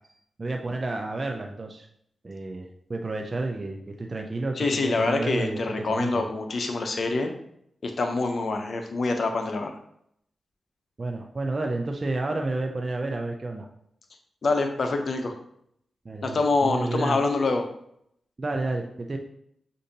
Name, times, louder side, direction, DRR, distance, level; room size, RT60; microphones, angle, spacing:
voice 1, 0.4-1.9 2.2-6.2 11.0-13.7 16.0-17.2 18.4-19.2, right 2 dB, 45° right, 2 dB, 0.5 m, -30 dB
voice 2, 4.6-7.3 7.8-9.7 14.4-15.4 16.2-17.6, left 3 dB, 65° left, 5 dB, 0.6 m, -25 dB
6.4 x 2.6 x 2.8 m, 0.72 s
supercardioid pair, 40°, 0 cm